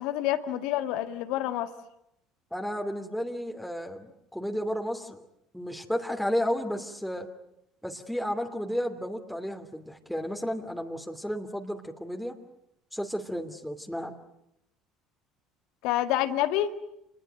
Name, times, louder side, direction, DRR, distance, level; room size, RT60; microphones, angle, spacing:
voice 1, 0.0-1.7 15.8-16.7, left 13 dB, 70° left, 9 dB, 1.9 m, -27 dB
voice 2, 2.5-5.2 5.5-7.3 7.8-12.4 12.9-14.1, equal, ahead, 3 dB, 2.9 m, -32 dB
29.0 x 20.5 x 9.1 m, 0.81 s
hypercardioid pair, 65°, 0 cm